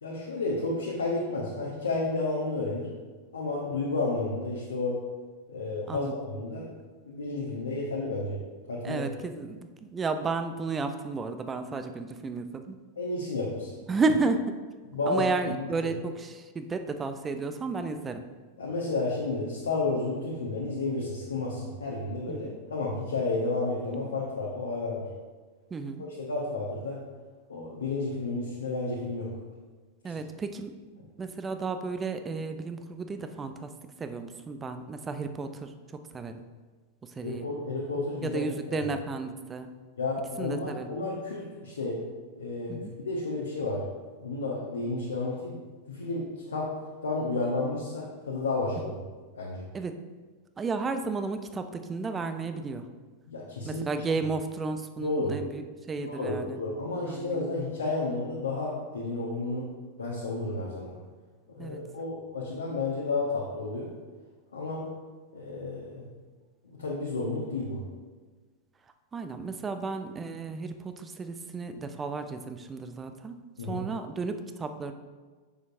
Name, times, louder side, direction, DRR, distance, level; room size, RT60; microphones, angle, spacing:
voice 1, 0.0-2.9 3.3-5.0 5.5-6.7 7.1-8.4 8.7-9.1 13.0-13.7 14.9-15.7 18.6-25.0 26.0-27.0 27.5-29.3 30.0-30.1 37.2-38.4 38.7-38.8 40.0-42.0 42.4-43.8 44.2-45.6 45.9-46.7 47.0-48.9 49.3-49.7 53.2-53.9 55.0-55.3 56.0-59.7 60.0-60.9 61.5-63.9 64.5-64.9 65.3-66.0 66.6-67.8 73.6-73.8, left 3 dB, 70° left, -4 dB, 0.9 m, -31 dB
voice 2, 8.8-12.8 13.9-14.4 15.1-18.2 22.3-22.5 25.7-26.0 30.0-30.7 31.2-33.7 34.0-35.7 36.1-36.4 37.0-37.5 38.2-39.7 40.4-40.9 42.7-42.9 49.7-49.9 50.6-52.9 53.6-55.6 55.9-56.6 57.0-57.4 61.6-61.8 69.1-73.4 73.6-74.9, right 4 dB, 20° right, 8 dB, 0.5 m, -33 dB
6.9 x 6.3 x 2.6 m, 1.4 s
figure-of-eight pair, 90°, 0 cm